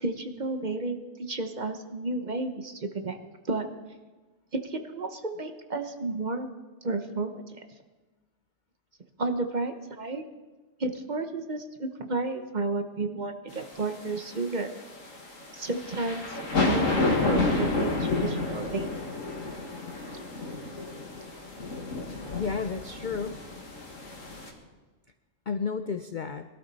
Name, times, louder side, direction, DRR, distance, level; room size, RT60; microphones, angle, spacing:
voice 1, 0.0-3.2 3.5-3.7 4.5-6.5 6.8-7.4 9.2-10.2 10.8-14.7 15.5-16.4 16.6-19.0, right 3 dB, 40° right, 7 dB, 1.0 m, -32 dB
sound 1, 13.6-24.5, left 2 dB, 85° left, 2.3 m, -30 dB
voice 2, 22.3-23.4 25.5-26.5, left 5 dB, 50° left, 8 dB, 0.6 m, -32 dB
21.0 x 12.5 x 4.1 m, 1.3 s
omnidirectional pair, 1.3 m